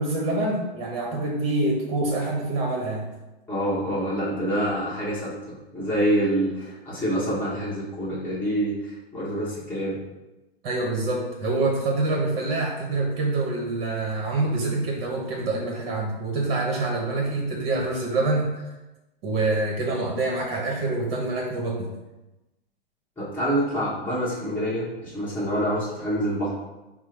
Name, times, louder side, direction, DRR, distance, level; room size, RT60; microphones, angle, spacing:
voice 1, 0.0-3.1 10.6-18.5 19.2-21.9, right 2 dB, 40° right, -1 dB, 0.9 m, -26 dB
voice 2, 3.5-10.0 23.2-26.5, equal, 5° left, -10 dB, 1.2 m, -26 dB
4.4 x 2.0 x 4.5 m, 1.0 s
hypercardioid pair, 125°, 31 cm